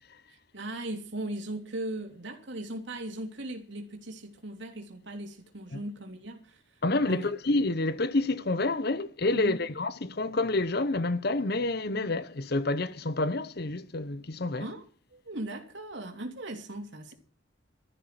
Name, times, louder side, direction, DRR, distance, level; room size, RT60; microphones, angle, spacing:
voice 1, 0.3-6.8 7.1-7.3 9.3-9.5 14.6-14.8 15.1-17.1, right 1 dB, 60° right, 3.2 m, -38 dB
voice 2, 6.8-14.7, left 2 dB, 50° left, 0.8 m, -28 dB
13.5 x 11.0 x 7.7 m
head